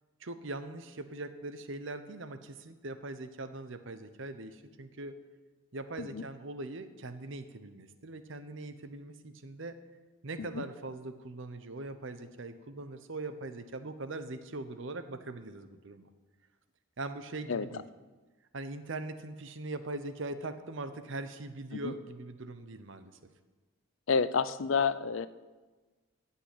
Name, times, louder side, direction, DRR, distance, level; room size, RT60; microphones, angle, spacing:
voice 1, 0.2-5.2 5.7-9.8 10.2-16.1 17.0-17.8 18.5-23.1, right 2 dB, 60° right, 10 dB, 0.9 m, -41 dB
voice 2, 24.1-25.3, left 5 dB, 65° left, 15 dB, 0.5 m, -30 dB
15.0 x 5.7 x 8.4 m, 1.3 s
head